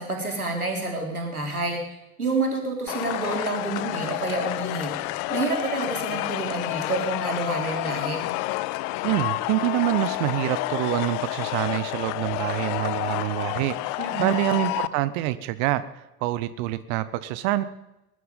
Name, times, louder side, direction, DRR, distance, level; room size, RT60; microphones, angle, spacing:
voice 1, 0.0-8.2 14.0-14.4, right 2 dB, 85° right, 1 dB, 3.3 m, -29 dB
sound 1, 2.9-14.9, left 18 dB, 40° left, 0.6 m, -29 dB
voice 2, 9.0-17.6, right 15 dB, 50° right, 14 dB, 0.9 m, -26 dB
20.0 x 11.0 x 5.3 m, 0.93 s
figure-of-eight pair, 70°, 43 cm